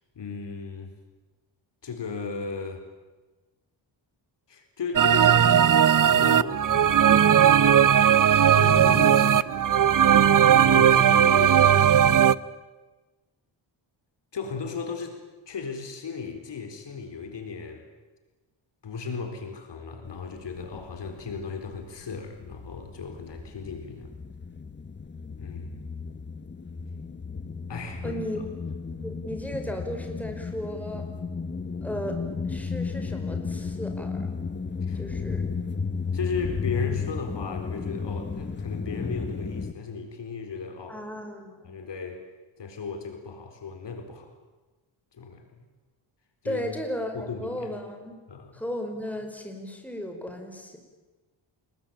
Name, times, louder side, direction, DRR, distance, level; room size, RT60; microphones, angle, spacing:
voice 1, 0.1-0.9 1.8-2.8 4.5-7.4 8.6-9.6 9.9-10.2 10.5-12.3 14.3-15.2 15.5-17.8 18.8-24.1 25.4-25.7 27.7-28.2 34.8-35.0 36.1-41.0 41.6-42.2 42.6-44.3 45.1-45.4 46.4-46.6 47.1-47.7 48.3-48.6, left 5 dB, 60° left, 6 dB, 4.3 m, -36 dB
sound 1, 5.0-12.4, right 9 dB, 40° right, 0.8 m, -18 dB
sound 2, 20.0-21.7 21.9-39.7, left 5 dB, 20° left, 1.1 m, -34 dB
voice 2, 28.0-28.4 29.0-31.1 31.8-32.2 32.4-34.3 34.9-35.4 40.9-41.7 46.4-48.2 48.5-50.8, equal, 5° left, 4 dB, 5.2 m, -35 dB
29.0 x 21.0 x 8.9 m, 1.2 s
cardioid pair, 110°, 48 cm